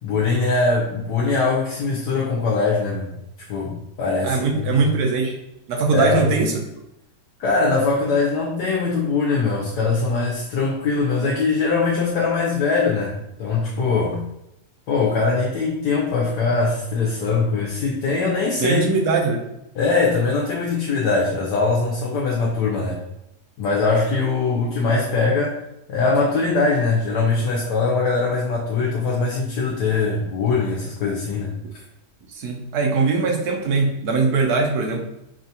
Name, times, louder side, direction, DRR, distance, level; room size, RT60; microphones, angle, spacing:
voice 1, 0.0-3.1 3.4-4.8 5.9-6.2 7.4-14.2 14.9-18.8 19.7-23.0 23.6-25.6 25.9-31.5, left 4 dB, 70° left, -3 dB, 1.2 m, -22 dB
voice 2, 4.2-5.4 5.7-6.5 18.6-19.4 32.3-35.0, right 4 dB, 70° right, 1 dB, 1.1 m, -21 dB
5.0 x 2.4 x 2.8 m, 0.84 s
omnidirectional pair, 1.9 m